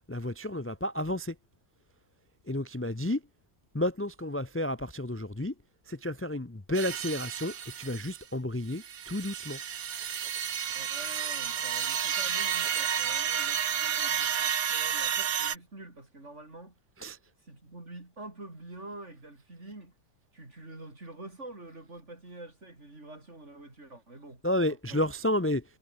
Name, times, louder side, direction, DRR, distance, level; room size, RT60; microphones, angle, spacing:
voice 1, 0.1-1.3 2.5-3.2 3.7-5.5 5.9-9.6 17.0-17.2 24.4-25.6, left 1 dB, 20° left, 0.3 m, -31 dB
sound 1, 6.7-8.2 8.7-15.6, right 8 dB, 60° right, 1.8 m, -31 dB
voice 2, 10.7-16.7 17.4-19.9 20.3-24.4 24.7-25.0, right 2 dB, 35° right, 5.6 m, -47 dB
omnidirectional pair, 2.0 m